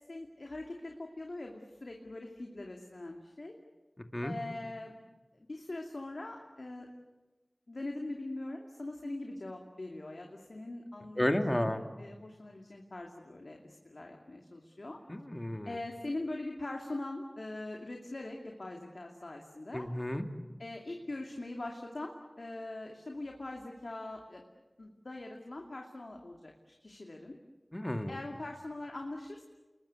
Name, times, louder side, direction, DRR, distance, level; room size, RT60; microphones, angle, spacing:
voice 1, 0.1-3.5 4.2-5.0 5.5-6.9 7.7-15.0 15.7-19.9 20.6-24.4 24.8-27.4 28.1-29.4, left 2 dB, 75° left, 1 dB, 2.6 m, -42 dB
voice 2, 11.2-11.8 15.1-15.8 19.7-20.3 27.7-28.2, left 1 dB, 25° left, 5 dB, 2.5 m, -32 dB
28.5 x 21.5 x 8.3 m, 1.1 s
wide cardioid pair, 45°, 0 cm